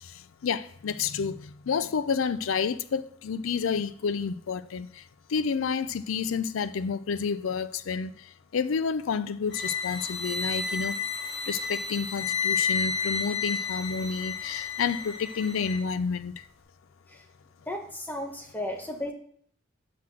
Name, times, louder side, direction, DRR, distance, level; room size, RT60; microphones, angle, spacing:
voice 1, 0.0-5.0 5.3-8.2 8.5-11.0 11.5-16.3, left 6 dB, 90° left, 0.4 m, -30 dB
sound 1, 9.5-15.8, left 5 dB, 55° left, 2.0 m, -31 dB
voice 2, 17.7-19.1, left 1 dB, 10° left, 1.0 m, -34 dB
6.1 x 5.8 x 6.1 m
head